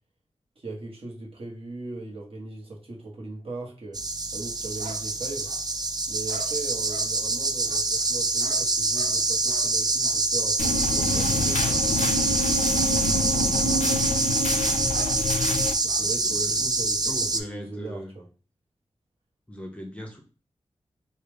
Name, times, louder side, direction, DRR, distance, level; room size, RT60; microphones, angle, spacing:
voice 1, 0.6-4.0 4.3-5.5 6.1-11.8 15.8-18.2, right 3 dB, 55° right, -2 dB, 1.2 m, -38 dB
sound 1, 3.9-17.4, right 3 dB, 35° right, 0.4 m, -25 dB
sound 2, 4.8-5.8 6.3-7.1 7.7-9.2 9.5-9.7 10.0-10.2 10.5-10.7 11.5-11.8 12.1-12.2 12.6-12.7 13.5-13.7 13.9-14.0 14.9-15.2 15.8-16.1, right 3 dB, 75° right, 0.7 m, -44 dB
sound 3, 10.6-15.7, left 3 dB, 85° left, 0.4 m, -27 dB
voice 2, 16.0-16.6 17.1-18.1 19.5-20.2, equal, 10° left, 1 dB, 0.6 m, -40 dB
3.2 x 2.4 x 3.3 m, 0.37 s
cardioid pair, 55°, 12 cm